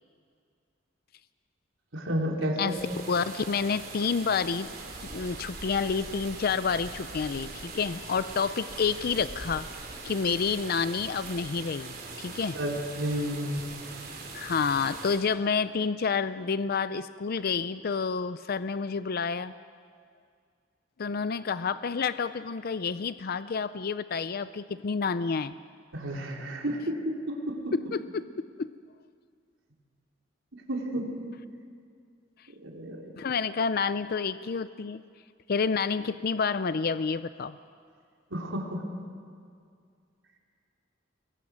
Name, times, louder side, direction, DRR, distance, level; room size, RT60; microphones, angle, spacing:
voice 1, 1.9-2.8 12.5-13.7 25.9-27.7 30.7-31.1 32.6-33.1 38.3-38.8, equal, 85° right, 0 dB, 3.9 m, -31 dB
sound 1, 2.7-15.2, right 3 dB, 50° right, 4.4 m, -42 dB
voice 2, 3.1-4.7 5.1-9.7 10.0-12.6 14.3-19.5 21.0-25.5 27.9-28.3 28.6-28.7 33.2-35.0 35.5-37.6, left 5 dB, 50° left, 13 dB, 0.5 m, -29 dB
27.5 x 22.0 x 6.3 m, 2.2 s
head